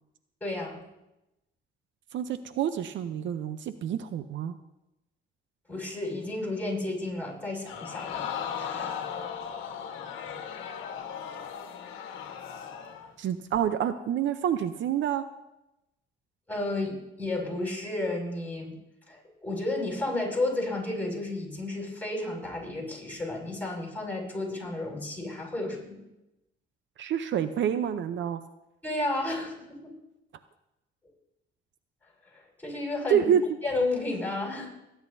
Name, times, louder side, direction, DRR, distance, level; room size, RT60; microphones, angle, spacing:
voice 1, 0.4-0.8 5.7-8.3 8.6-9.0 16.5-18.8 19.1-26.0 28.8-29.9 32.3-33.3 33.6-34.7, left 2 dB, 10° left, -2 dB, 6.2 m, -32 dB
voice 2, 2.1-4.6 13.2-15.2 27.0-28.4 33.1-33.4, right 9 dB, 70° right, 11 dB, 0.7 m, -27 dB
Crowd, 7.6-13.1 13.5-13.6, left 7 dB, 90° left, 1.3 m, -37 dB
25.0 x 10.5 x 2.7 m, 0.92 s
cardioid pair, 90°, 20 cm